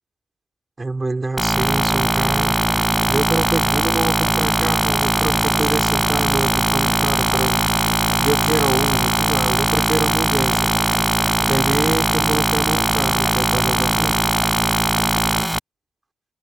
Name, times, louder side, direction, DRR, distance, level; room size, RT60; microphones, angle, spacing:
voice 1, 0.8-2.6 3.1-7.6 8.2-10.7 11.5-14.2, right 3 dB, 30° right, 5.9 m, -25 dB
sound 1, 1.4-15.6, equal, 5° right, 0.4 m, -19 dB
supercardioid pair, 50°, 0 cm